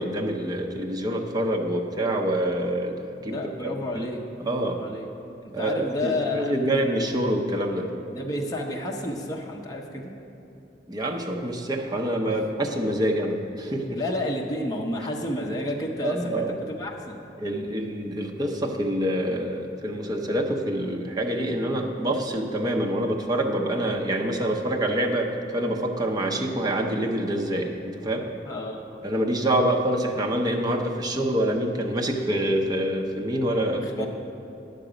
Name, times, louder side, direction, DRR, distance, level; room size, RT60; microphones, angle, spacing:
voice 1, 0.0-3.0 3.2-3.4 3.6-4.1 4.4-4.8 5.5-7.9 10.9-14.0 16.0-16.5 17.4-28.2 29.0-34.1, right 1 dB, 20° right, 1 dB, 0.7 m, -26 dB
voice 2, 3.2-4.2 4.5-5.1 5.6-6.7 8.1-10.1 12.2-12.4 13.9-17.2 28.4-29.0 33.8-34.1, left 1 dB, 20° left, 0 dB, 0.7 m, -31 dB
9.8 x 6.8 x 5.0 m, 2.9 s
head